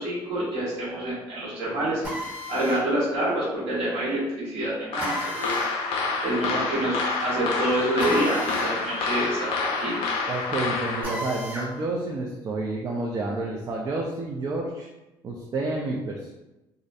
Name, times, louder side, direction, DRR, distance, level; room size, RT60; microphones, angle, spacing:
voice 1, 0.0-2.2 2.5-5.6 6.2-10.2, right 1 dB, 75° right, -10 dB, 1.3 m, -27 dB
Drill, 2.0-2.9 5.0-5.8 8.0-8.8 9.1-9.2 11.0-11.7, equal, 15° right, 0.8 m, -34 dB
sound 1, 4.9-11.0, left 4 dB, 75° left, 0.4 m, -28 dB
voice 2, 10.3-14.9 15.2-16.3, right 2 dB, 35° right, -1 dB, 0.3 m, -29 dB
2.4 x 2.0 x 2.6 m, 1.0 s
cardioid pair, 105°, 10 cm